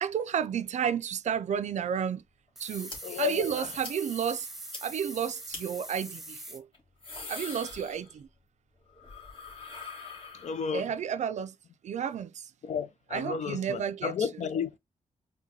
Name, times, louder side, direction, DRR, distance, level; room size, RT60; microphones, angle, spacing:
voice 1, 0.0-2.2 2.6-4.5 4.8-6.7 7.3-8.3 10.7-11.5 11.8-12.5 13.1-14.1, right 8 dB, 65° right, 0.4 m, -31 dB
sound 1, 2.6-6.6, right 1 dB, ahead, 1.0 m, -43 dB
sound 2, 2.9-3.0 3.3-3.4 3.8-4.0 4.3-4.4 4.7-4.8 5.5-5.6 6.7-8.4 8.7-10.9, left 3 dB, 40° left, 1.5 m, -43 dB
voice 2, 3.0-3.7 10.3-10.9 12.6-14.7, left 7 dB, 65° left, 0.5 m, -32 dB
4.5 x 2.2 x 2.7 m
cardioid pair, 80°, 13 cm